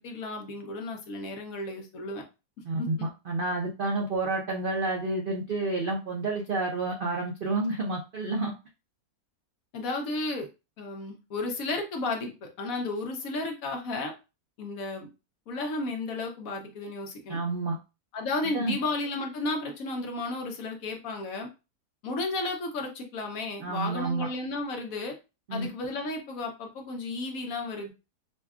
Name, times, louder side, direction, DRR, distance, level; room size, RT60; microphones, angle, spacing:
voice 1, 0.0-2.2 2.8-3.1 9.7-10.5 10.8-14.1 14.6-15.1 15.5-17.4 18.1-21.5 22.0-25.1 25.5-27.9, left 2 dB, 65° left, 3 dB, 1.1 m, -33 dB
voice 2, 3.3-8.5 17.3-17.8 18.5-18.7 23.6-24.3 25.5-25.7, right 2 dB, 65° right, 0 dB, 0.5 m, -29 dB
5.2 x 2.2 x 2.3 m, 0.28 s
omnidirectional pair, 1.7 m